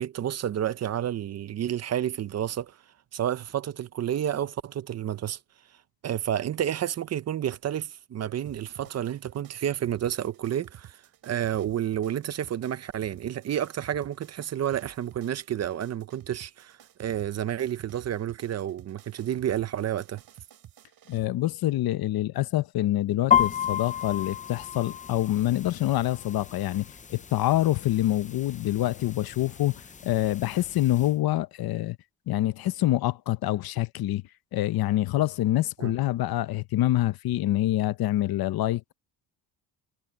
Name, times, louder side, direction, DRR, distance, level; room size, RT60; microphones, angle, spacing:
voice 1, 0.0-2.8 3.1-5.4 6.0-11.0 11.2-20.2 35.8-35.9, right 10 dB, 40° right, 0.6 m, -30 dB
sound 1, 8.5-21.3, right 11 dB, 65° right, 5.2 m, -51 dB
voice 2, 21.1-29.7 30.0-32.0 32.3-34.2 34.5-38.9, left 15 dB, 65° left, 0.8 m, -26 dB
sound 2, 23.3-31.1, left 9 dB, 20° left, 0.6 m, -32 dB
cardioid pair, 170°, 39 cm